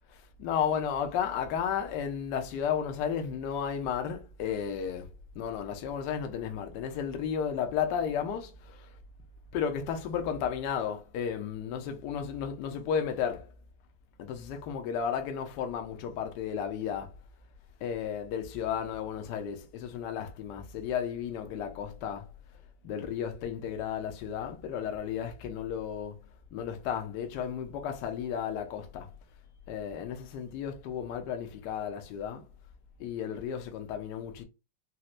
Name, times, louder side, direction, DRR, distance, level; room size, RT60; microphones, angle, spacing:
voice 1, 0.1-5.1 5.3-9.0 9.5-13.5 14.2-17.2 17.8-22.3 22.8-26.2 26.5-29.1 29.7-32.5 33.0-34.4, left 8 dB, 70° left, 1.2 m, -33 dB
4.1 x 2.1 x 2.4 m
omnidirectional pair, 2.1 m